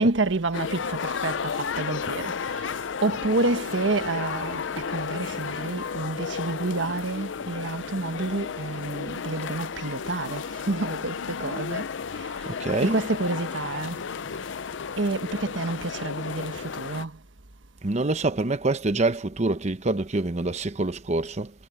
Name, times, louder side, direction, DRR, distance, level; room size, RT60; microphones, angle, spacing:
voice 1, 0.0-2.7 3.0-11.9 12.1-12.3 12.8-14.0 15.0-17.2, right 2 dB, 80° right, 1.4 m, -29 dB
sound 1, 0.5-17.0, left 6 dB, 75° left, 0.6 m, -33 dB
voice 2, 12.5-13.0 17.8-21.5, right 2 dB, 35° right, 0.8 m, -26 dB
head